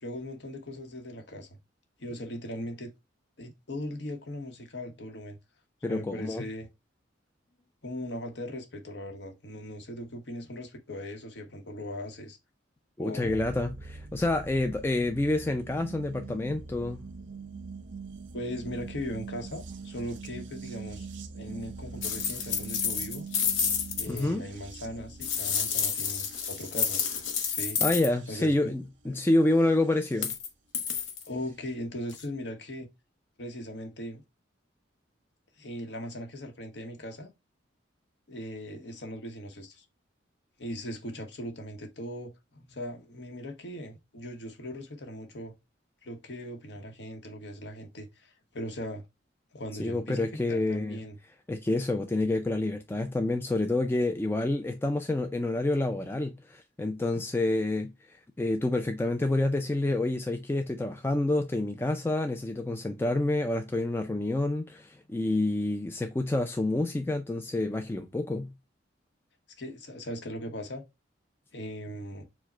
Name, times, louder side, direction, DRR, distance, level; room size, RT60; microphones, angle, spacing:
voice 1, 0.0-1.6 2.0-2.9 3.4-5.4 5.9-6.7 7.8-12.4 13.0-13.4 18.3-21.1 21.3-23.3 24.0-27.1 27.5-27.8 28.3-28.7 29.0-29.2 31.2-32.9 33.4-34.2 35.6-37.3 38.3-39.9 40.6-45.5 46.0-49.1 49.5-51.2 69.6-70.8 71.5-72.2, left 1 dB, 60° left, 0.9 m, -39 dB
voice 2, 5.8-6.4 13.0-17.0 24.1-24.5 27.8-30.3 49.8-51.0 51.5-57.9 58.4-68.5, left 2 dB, 10° left, 0.3 m, -28 dB
sound 1, 13.2-30.3 31.4-31.5, right 4 dB, 75° right, 0.7 m, -44 dB
sound 2, 22.0-24.2 25.2-28.1 30.1-30.5 30.7-31.3 32.1-32.2, left 7 dB, 90° left, 0.8 m, -30 dB
4.7 x 2.1 x 4.3 m
head